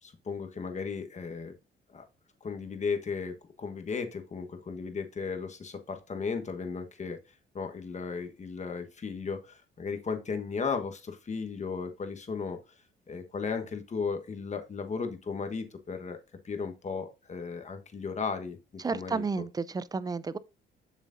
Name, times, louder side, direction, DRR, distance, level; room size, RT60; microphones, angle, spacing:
voice 1, 0.0-1.5 1.9-2.0 2.4-7.2 7.5-12.6 13.1-16.2 16.4-18.6 18.9-19.2, left 5 dB, 35° left, 1.2 m, -35 dB
voice 2, 18.8-20.4, right 4 dB, 20° right, 0.4 m, -32 dB
7.3 x 6.3 x 2.6 m
cardioid pair, 90°, 20 cm